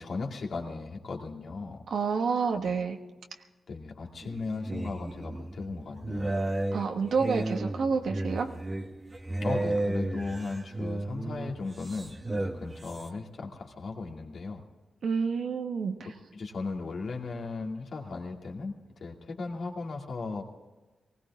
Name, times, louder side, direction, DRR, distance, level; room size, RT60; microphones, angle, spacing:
voice 1, 0.0-1.8 2.5-2.7 3.7-6.3 9.4-14.6 16.0-18.7 19.0-20.4, left 3 dB, 60° left, 1 dB, 2.4 m, -37 dB
voice 2, 1.9-3.0 6.7-8.5 15.0-15.9, right 5 dB, 75° right, 4 dB, 1.3 m, -28 dB
sound 1, 4.2-13.1, right 2 dB, 20° right, 1.1 m, -34 dB
19.5 x 17.5 x 3.6 m, 1.2 s
wide cardioid pair, 110°, 0 cm